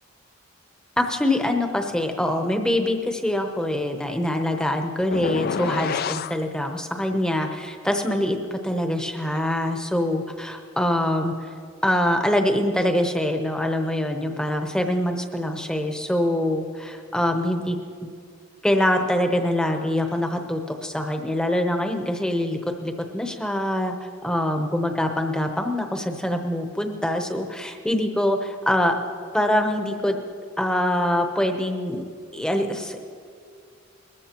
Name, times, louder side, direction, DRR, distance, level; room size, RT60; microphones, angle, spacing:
voice 1, 1.0-11.5 11.8-17.8 18.6-29.0 29.3-30.2 30.6-32.0 32.3-33.0, left 1 dB, 5° left, 4 dB, 0.8 m, -24 dB
sound 1, 5.1-6.4, left 6 dB, 45° left, 0.3 m, -28 dB
20.5 x 14.0 x 3.0 m, 2.2 s
head